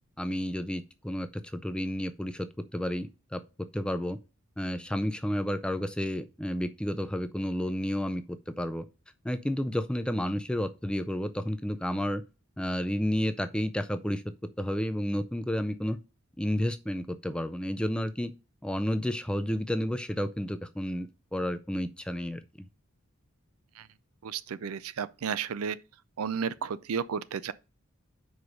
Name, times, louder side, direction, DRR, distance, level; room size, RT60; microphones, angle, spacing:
voice 1, 0.2-4.2 4.6-8.9 9.2-12.2 12.6-14.2 14.6-16.0 16.4-18.3 18.6-22.7, equal, 5° left, 0.4 m, -31 dB
voice 2, 24.2-25.8 26.2-27.5, right 6 dB, 85° right, 0.5 m, -33 dB
5.3 x 4.8 x 6.3 m
head